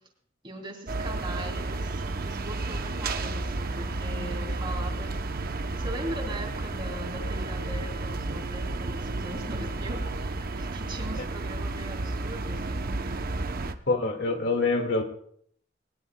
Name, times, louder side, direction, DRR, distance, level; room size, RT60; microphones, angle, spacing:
voice 1, 0.4-5.2 5.5-12.9, right 1 dB, 25° right, 2 dB, 3.0 m, -40 dB
sound 1, 0.9-13.7, right 2 dB, 50° right, 0.7 m, -32 dB
voice 2, 13.9-15.0, left 3 dB, 65° left, 4 dB, 1.9 m, -25 dB
21.0 x 19.5 x 2.2 m, 0.65 s
head